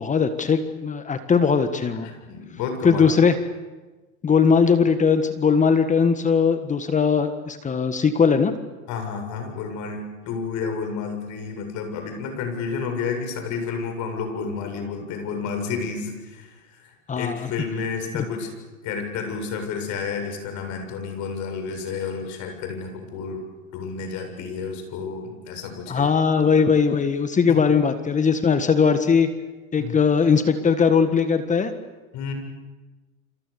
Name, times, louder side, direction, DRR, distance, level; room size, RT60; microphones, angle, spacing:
voice 1, 0.0-2.1 2.8-3.3 4.2-8.5 17.1-17.5 18.1-18.2 25.9-29.3 29.7-31.7, left 6 dB, 20° left, 10 dB, 1.6 m, -19 dB
voice 2, 2.0-3.1 8.9-18.5 18.8-23.4 23.7-26.1 27.5-27.6 29.8-30.0 32.1-32.3, left 5 dB, 45° left, 5 dB, 7.5 m, -31 dB
28.5 x 26.5 x 7.0 m, 1.2 s
hypercardioid pair, 110°, 41 cm